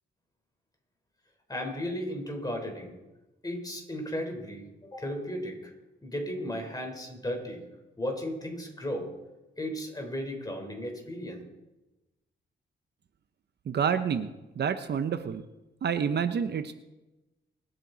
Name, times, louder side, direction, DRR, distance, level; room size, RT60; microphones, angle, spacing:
voice 1, 1.5-2.9 3.4-5.7 6.0-7.6 8.0-9.1 9.6-11.4, equal, 20° left, 2 dB, 4.0 m, -35 dB
voice 2, 13.7-14.3 14.6-15.4 15.8-16.7, right 7 dB, 60° right, 10 dB, 0.8 m, -28 dB
24.5 x 9.1 x 4.0 m, 1.0 s
cardioid pair, 95°, 20 cm